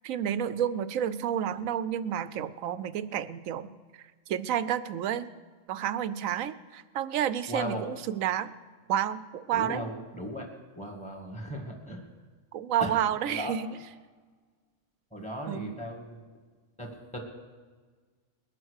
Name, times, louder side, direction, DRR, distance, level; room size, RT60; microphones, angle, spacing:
voice 1, 0.0-3.7 4.3-5.3 5.7-8.5 8.9-9.8 12.5-13.8 15.5-15.7, right 10 dB, 90° right, 14 dB, 1.0 m, -30 dB
voice 2, 7.5-7.8 9.5-10.5 10.8-12.1 12.8-13.0 13.3-13.5 15.1-16.2 16.8-17.2, equal, 5° left, 2 dB, 2.0 m, -37 dB
21.0 x 7.6 x 6.5 m, 1.5 s
omnidirectional pair, 1.4 m